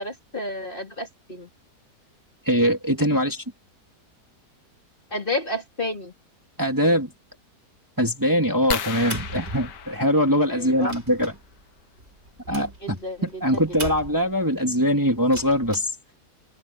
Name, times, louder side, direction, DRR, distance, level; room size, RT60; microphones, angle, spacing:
voice 1, 0.0-1.5 3.1-3.2 5.1-6.1 10.5-11.0 12.8-13.9, left 1 dB, 30° left, 3.6 m, -31 dB
voice 2, 2.5-3.4 6.6-7.1 8.0-11.3 12.5-13.0 13.2-15.9, equal, 10° right, 2.9 m, -22 dB
sound 1, 8.7-11.1 12.7-12.9 13.4-13.5 13.8-14.0, left 8 dB, 90° left, 1.8 m, -34 dB
sound 2, 9.0-10.2 10.6-14.4 15.2-15.8, right 1 dB, 40° right, 5.3 m, -39 dB
omnidirectional pair, 1.8 m